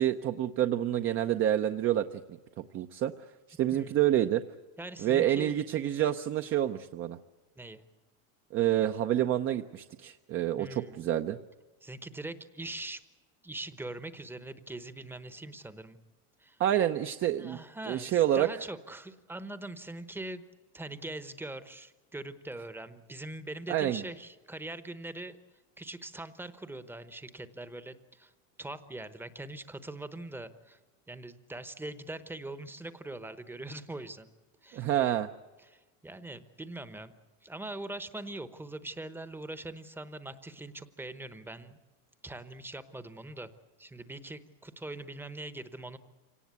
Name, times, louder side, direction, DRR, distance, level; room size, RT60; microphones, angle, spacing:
voice 1, 0.0-2.2 2.6-3.1 3.6-4.4 5.0-7.2 8.5-11.4 16.6-17.6 17.9-18.5 23.7-24.0 34.7-35.3, right 12 dB, 30° right, 8 dB, 0.7 m, -28 dB
voice 2, 4.8-5.6 7.6-7.8 10.6-11.0 11.8-13.0 13.4-16.0 16.4-16.6 17.4-20.4 20.7-25.4 25.8-28.3 28.6-30.8 31.1-34.3 34.6-34.9 35.6-37.1 37.4-41.8 42.2-43.5 43.8-46.0, right 2 dB, 5° right, 12 dB, 0.9 m, -42 dB
25.5 x 18.5 x 8.3 m, 1.2 s
supercardioid pair, 145°, 41 cm